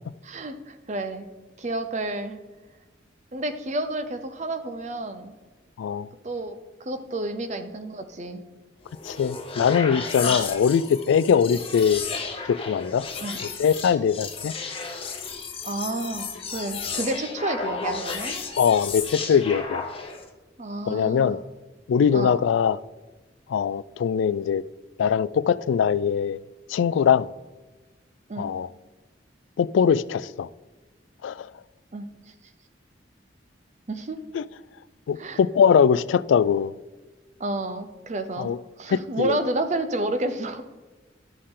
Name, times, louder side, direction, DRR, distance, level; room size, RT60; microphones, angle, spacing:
voice 1, 0.2-1.3 1.6-2.4 3.3-5.3 6.2-8.4 10.3-10.4 13.2-13.4 15.6-18.4 20.6-21.4 22.1-22.4 28.3-28.5 31.9-32.1 33.9-34.2 35.2-35.4 37.4-38.5 38.8-40.6, right 2 dB, 40° right, 0.7 m, -30 dB
sound 1, 8.8-20.3, left 5 dB, 30° left, 1.0 m, -33 dB
voice 2, 9.1-12.0 12.5-13.1 13.6-14.5 18.6-19.8 20.9-21.4 21.9-22.8 23.5-24.6 25.0-26.4 26.7-27.3 28.4-28.7 29.6-30.5 31.2-31.5 34.3-34.5 35.1-36.7 38.4-38.6 38.9-39.4, left 7 dB, 90° left, 0.3 m, -21 dB
11.5 x 6.5 x 3.8 m
head